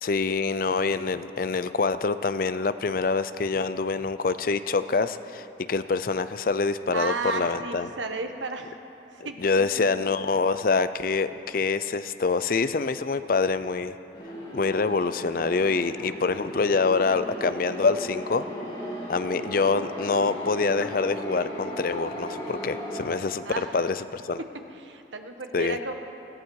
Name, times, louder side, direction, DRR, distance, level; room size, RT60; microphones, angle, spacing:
voice 1, 0.0-7.9 9.2-14.0 14.5-18.5 19.1-24.4 25.5-25.8, left 4 dB, 50° left, 13 dB, 0.5 m, -26 dB
voice 2, 6.9-8.7 9.1-10.1 23.4-23.7 24.8-25.9, right 3 dB, 85° right, 6 dB, 1.2 m, -33 dB
sound 1, 14.1-23.1, equal, 30° left, 3.2 m, -36 dB
19.5 x 14.5 x 4.7 m, 3.0 s
head